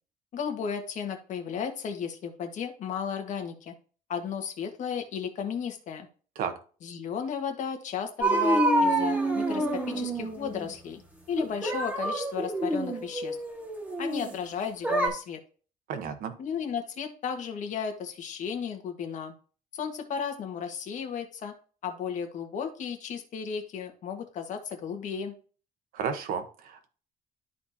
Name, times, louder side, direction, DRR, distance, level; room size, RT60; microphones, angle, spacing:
voice 1, 0.3-3.7 4.1-6.1 6.8-11.0 11.3-13.4 14.0-15.4 16.4-19.3 19.7-21.5 21.8-25.3, left 7 dB, 55° left, 5 dB, 1.6 m, -34 dB
sound 1, 8.2-10.7 11.4-14.3 14.8-15.1, right 1 dB, 10° right, 1.7 m, -27 dB
voice 2, 15.9-16.3 25.9-26.9, right 7 dB, 75° right, 6 dB, 1.1 m, -33 dB
12.0 x 4.2 x 2.8 m, 0.38 s
cardioid pair, 145°, 15 cm